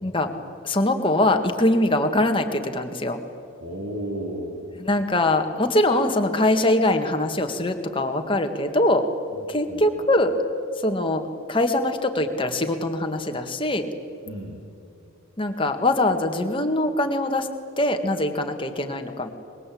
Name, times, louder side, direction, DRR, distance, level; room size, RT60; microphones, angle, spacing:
voice 1, 0.6-3.2 4.8-9.1 9.5-10.3 10.8-11.2 11.5-13.9 15.4-17.5 17.8-19.3, left 1 dB, 25° left, 5 dB, 1.8 m, -22 dB
voice 2, 3.6-4.7 9.4-10.0 14.2-14.6, right 1 dB, 65° right, -2 dB, 4.1 m, -33 dB
24.5 x 22.5 x 8.6 m, 2.6 s
head